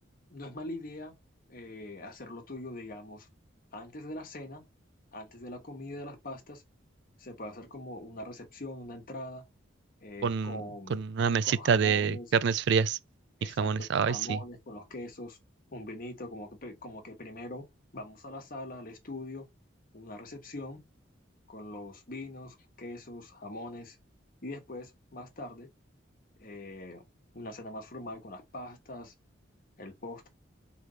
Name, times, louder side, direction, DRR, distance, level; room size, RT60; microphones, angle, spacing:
voice 1, 0.3-1.1 1.5-3.3 3.7-4.6 5.1-6.6 7.2-9.4 10.0-11.0 11.4-12.3 13.4-15.4 15.7-17.7 17.9-19.5 19.9-20.8 21.5-24.0 24.4-25.7 26.4-27.0 27.3-29.1 29.8-30.3, left 1 dB, 45° left, 1.2 m, -42 dB
voice 2, 10.2-10.6 10.9-13.0 13.4-14.4, right 6 dB, 60° right, 0.3 m, -27 dB
3.8 x 3.4 x 3.1 m
head